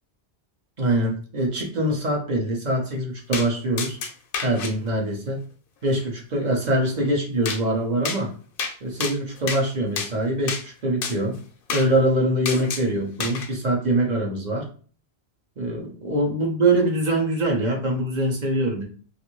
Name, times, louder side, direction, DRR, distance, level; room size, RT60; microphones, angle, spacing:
voice 1, 0.8-4.0 4.4-5.4 5.8-8.3 8.8-11.4 11.7-14.7 15.6-18.8, right 1 dB, 50° right, 0 dB, 0.8 m, -23 dB
sound 1, 3.3-3.5 3.8-4.7 7.5-7.6 8.0-8.2 8.6-8.7 9.0-9.6 10.0-10.1 10.5-10.6 11.0-11.2 11.7-11.9 12.5-12.9 13.2-13.5, left 5 dB, 65° left, 0.7 m, -29 dB
2.5 x 2.5 x 3.0 m, 0.41 s
omnidirectional pair, 1.1 m